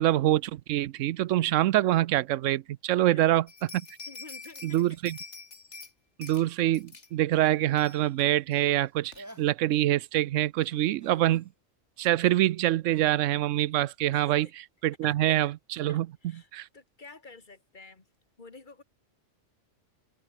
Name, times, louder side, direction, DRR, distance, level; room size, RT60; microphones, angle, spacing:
voice 1, 0.0-3.4 4.6-5.2 6.2-9.1 9.4-11.4 12.0-14.5 14.8-16.1 16.5-16.7, right 14 dB, 90° right, 1.0 m, -25 dB
sound 1, 3.5-5.9 6.2-6.4 6.7-7.1 7.5-7.6 7.8-8.2 8.5-8.6 9.1-9.2, left 4 dB, 70° left, 2.7 m, -45 dB
voice 2, 4.1-5.0 14.1-14.5 15.0-15.5 15.9-18.1 18.4-18.8, left 3 dB, 40° left, 2.1 m, -51 dB
sound 2, 7.3-7.9 8.9-9.0 9.2-9.9 10.6-11.5 12.8-13.1 13.9-14.0, right 1 dB, 15° right, 4.5 m, -51 dB
omnidirectional pair, 1.2 m